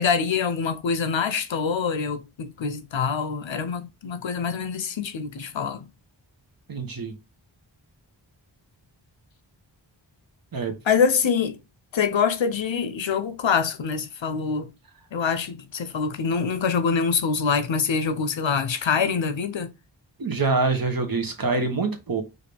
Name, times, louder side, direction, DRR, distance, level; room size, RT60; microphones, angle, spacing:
voice 1, 0.0-5.9 10.9-11.6 11.9-14.7 15.1-19.7, left 6 dB, 80° left, 0.8 m, -25 dB
voice 2, 6.7-7.1 10.5-10.7 20.2-22.2, right 3 dB, 50° right, 1.1 m, -25 dB
5.1 x 2.7 x 3.4 m
wide cardioid pair, 80°, 45 cm